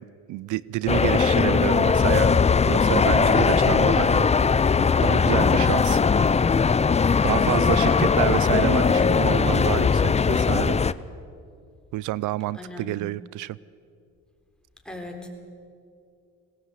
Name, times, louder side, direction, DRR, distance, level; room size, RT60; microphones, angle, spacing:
voice 1, 0.0-4.3 5.0-6.0 6.3-6.6 7.2-10.8 11.9-13.6, right 16 dB, 80° right, 20 dB, 0.5 m, -28 dB
sound 1, 0.9-10.9, left 5 dB, 20° left, 0.5 m, -20 dB
voice 2, 12.5-12.9 14.9-15.3, left 1 dB, 5° left, 1 dB, 4.0 m, -38 dB
21.0 x 18.0 x 8.1 m, 2.4 s
cardioid pair, 90°, 30 cm